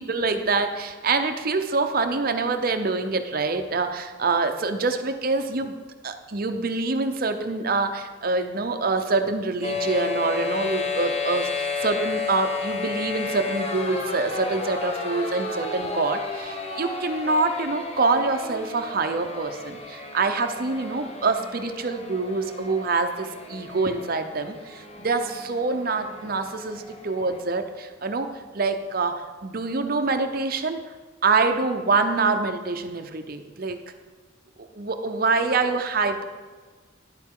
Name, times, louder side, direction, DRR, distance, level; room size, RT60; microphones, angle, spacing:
voice 1, 0.0-5.7 6.0-30.8 31.2-33.8 34.6-36.2, right 3 dB, 50° right, 7 dB, 0.7 m, -25 dB
sound 1, 9.6-27.4, left 4 dB, 30° left, 0.9 m, -32 dB
10.5 x 9.3 x 3.7 m, 1.4 s
head